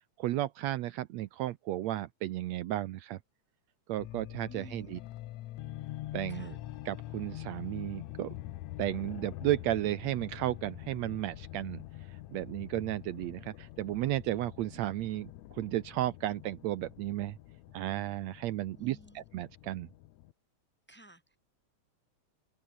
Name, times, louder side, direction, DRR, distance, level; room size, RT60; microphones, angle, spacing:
voice 1, 0.2-3.2 3.9-5.0 6.1-6.5 6.9-8.3 8.8-11.8 12.3-17.4 17.7-19.9, right 14 dB, 75° right, 1.9 m, -34 dB
sound 1, 4.0-20.3, left 15 dB, 75° left, 2.1 m, -45 dB
voice 2, 4.5-5.1 6.3-6.6 18.7-19.2 20.9-21.4, equal, 5° left, 2.3 m, -54 dB
open air
omnidirectional pair, 3.4 m